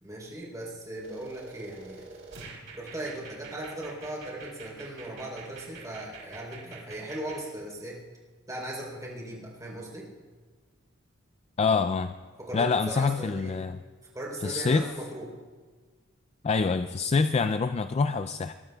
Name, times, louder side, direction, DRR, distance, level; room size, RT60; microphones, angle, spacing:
voice 1, 0.0-2.0 2.7-8.0 8.5-10.1 12.4-13.7 14.1-15.3, right 1 dB, 15° right, -4 dB, 3.5 m, -38 dB
sound 1, 1.0-7.4, right 4 dB, 65° right, 3.1 m, -47 dB
voice 2, 11.6-12.1 12.5-13.8 14.4-14.9 16.4-18.5, left 4 dB, 30° left, 10 dB, 0.3 m, -26 dB
22.0 x 20.0 x 2.3 m, 1.5 s
head